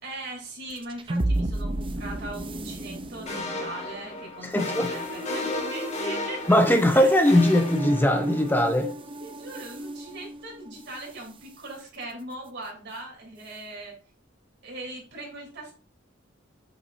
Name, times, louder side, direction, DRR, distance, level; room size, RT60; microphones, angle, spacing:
voice 1, 0.0-6.4 6.9-7.1 9.2-13.9 14.6-15.7, right 2 dB, 60° right, 3.2 m, -40 dB
sound 1, 0.7-11.2, right 1 dB, 25° right, 0.5 m, -34 dB
sound 2, 3.3-8.6, left 2 dB, 35° left, 1.6 m, -34 dB
voice 2, 4.5-4.9 6.5-8.9, left 1 dB, 10° left, 0.7 m, -20 dB
8.3 x 5.9 x 2.6 m
head